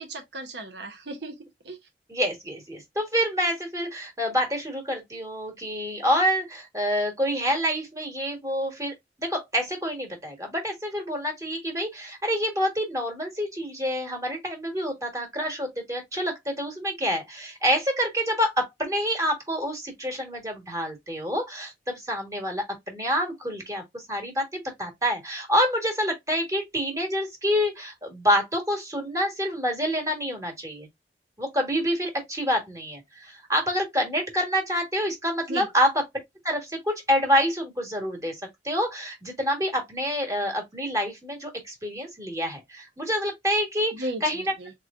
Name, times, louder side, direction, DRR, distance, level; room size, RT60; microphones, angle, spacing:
voice 1, 0.0-1.8 35.5-35.7 43.9-44.7, right 1 dB, 75° right, 0.8 m, -36 dB
voice 2, 2.1-8.9 9.2-30.9 31.4-36.0 36.4-44.5, equal, 20° right, 1.4 m, -27 dB
3.8 x 3.0 x 2.4 m
head